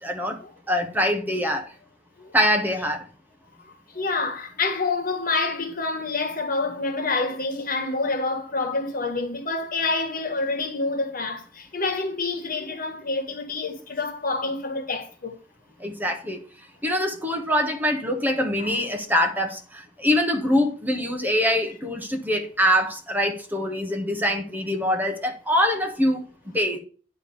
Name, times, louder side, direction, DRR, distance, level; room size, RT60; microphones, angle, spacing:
voice 1, 0.0-0.4 0.7-1.7 2.3-3.0 15.8-16.4 16.8-26.2 26.5-26.8, equal, 10° right, 1.2 m, -24 dB
voice 2, 3.9-15.3 18.6-18.7, left 3 dB, 50° left, 1.8 m, -27 dB
10.0 x 3.5 x 6.9 m
head